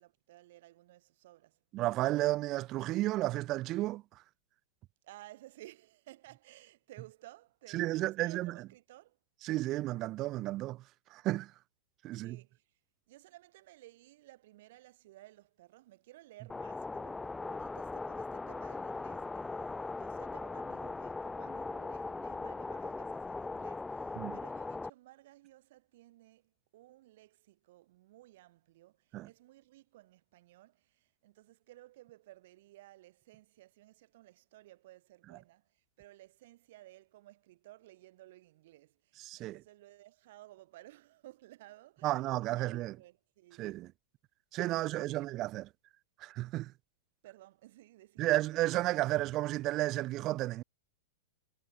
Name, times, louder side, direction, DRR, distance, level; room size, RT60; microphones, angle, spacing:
voice 1, 0.0-1.6 5.0-9.2 12.1-12.7 13.1-43.7 44.6-45.3 47.2-48.3, right 16 dB, 60° right, 6.6 m, -57 dB
voice 2, 1.7-4.0 7.7-8.5 9.4-10.8 11.1-11.5 12.0-12.4 24.2-24.4 29.1-29.3 39.2-39.6 42.0-42.9 43.6-43.9 44.5-45.7 46.2-46.7 48.2-50.6, right 17 dB, 40° right, 0.6 m, -32 dB
sound 1, 16.5-24.9, left 3 dB, 10° left, 0.5 m, -39 dB
hypercardioid pair, 115°, 0 cm